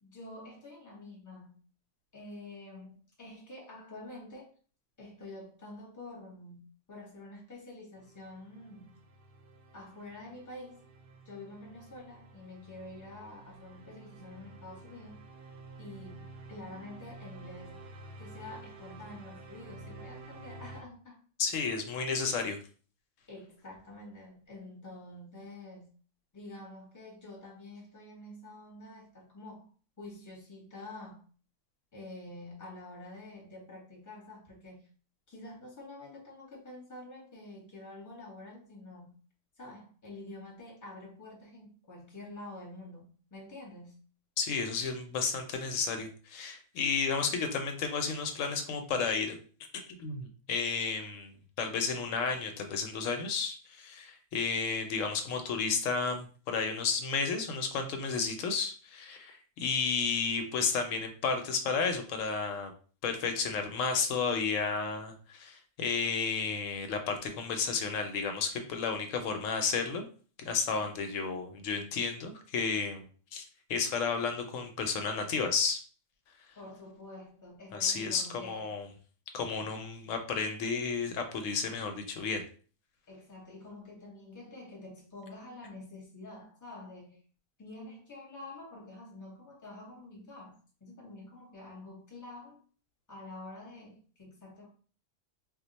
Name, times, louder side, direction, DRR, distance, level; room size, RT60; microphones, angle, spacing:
voice 1, 0.0-1.6 2.1-4.5 5.0-9.0 9.7-10.8 11.2-15.2 15.8-17.8 18.2-21.2 21.6-21.7 23.3-25.9 26.3-29.7 30.0-31.3 31.9-34.9 35.3-39.2 39.6-44.0 76.6-78.8 83.1-87.2 87.6-92.6 93.1-94.7, left 2 dB, 15° left, -1 dB, 0.8 m, -48 dB
sound 1, 8.0-20.8, right 2 dB, 60° right, 0.6 m, -50 dB
voice 2, 21.4-22.6 44.4-49.4 50.0-51.3 51.6-62.7 63.0-70.1 70.4-73.0 73.3-73.4 73.7-75.8 77.7-78.9 79.3-82.4, left 5 dB, 85° left, 5 dB, 1.0 m, -32 dB
2.5 x 2.1 x 3.9 m, 0.41 s
omnidirectional pair, 1.3 m